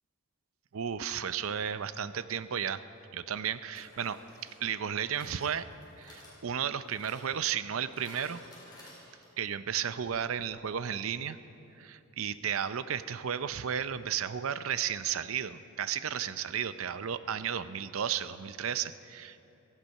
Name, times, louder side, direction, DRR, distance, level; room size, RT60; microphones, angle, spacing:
voice 1, 0.7-2.8 3.1-5.7 6.0-8.4 8.8-8.9 9.4-11.4 11.8-19.4, right 8 dB, 70° right, 13 dB, 0.5 m, -33 dB
sound 1, 2.5-2.6 3.7-9.5 9.8-9.9 10.1-10.2, left 1 dB, 20° left, 4.6 m, -54 dB
17.0 x 15.0 x 5.5 m, 2.9 s
head